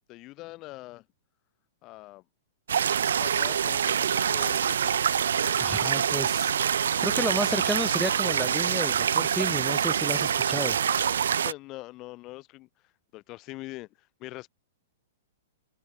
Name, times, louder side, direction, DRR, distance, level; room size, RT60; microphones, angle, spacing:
voice 1, 0.1-1.0 1.8-2.2 3.2-5.0 11.4-12.7 13.1-13.9 14.2-14.5, left 20 dB, 35° left, 1.5 m, -42 dB
sound 1, 2.7-11.5, right 8 dB, 75° right, 0.5 m, -25 dB
voice 2, 5.6-6.5 7.0-10.8, right 1 dB, ahead, 1.0 m, -32 dB
hypercardioid pair, 115°, 0 cm